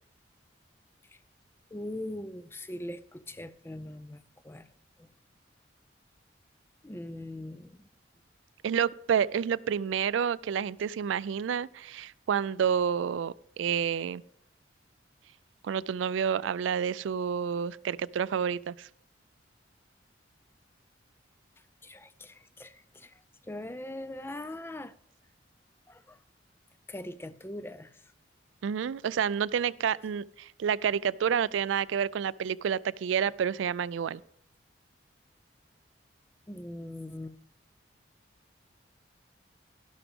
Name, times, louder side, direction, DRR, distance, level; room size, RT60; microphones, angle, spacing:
voice 1, 1.7-4.6 6.8-7.7 21.8-23.1 23.5-24.9 25.9-26.2 26.9-27.9 36.5-37.3, left 1 dB, 10° left, 0.4 m, -41 dB
voice 2, 8.6-14.2 15.6-18.9 28.6-34.2, right 7 dB, 80° right, 0.3 m, -29 dB
12.0 x 12.0 x 3.5 m
head